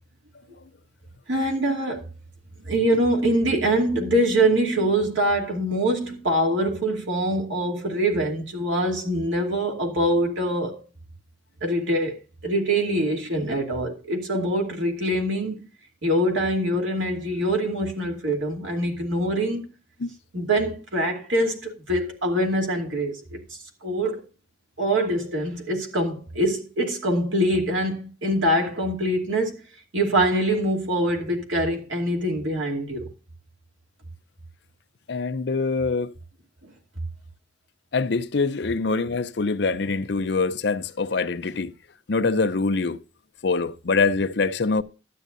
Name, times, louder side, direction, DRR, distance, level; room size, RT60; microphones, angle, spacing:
voice 1, 1.3-2.0 2.6-10.8 11.6-15.6 16.0-19.6 20.3-24.2 24.8-29.6 29.9-33.1 36.6-36.7, right 1 dB, 85° right, 2.6 m, -24 dB
voice 2, 35.1-36.1 37.9-41.7 42.1-43.0 43.4-44.8, left 4 dB, 60° left, 0.6 m, -24 dB
12.5 x 9.1 x 2.6 m
head